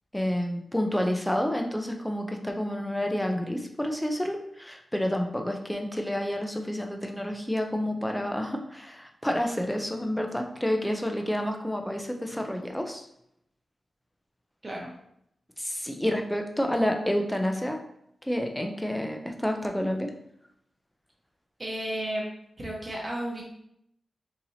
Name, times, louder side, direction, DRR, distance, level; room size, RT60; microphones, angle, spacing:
voice 1, 0.1-13.1 15.6-17.8 18.2-20.1, equal, 5° left, 3 dB, 0.4 m, -29 dB
voice 2, 21.6-22.2 22.6-23.4, right 1 dB, 30° right, -2 dB, 0.8 m, -33 dB
4.0 x 2.8 x 2.7 m, 0.74 s
wide cardioid pair, 125°, 0 cm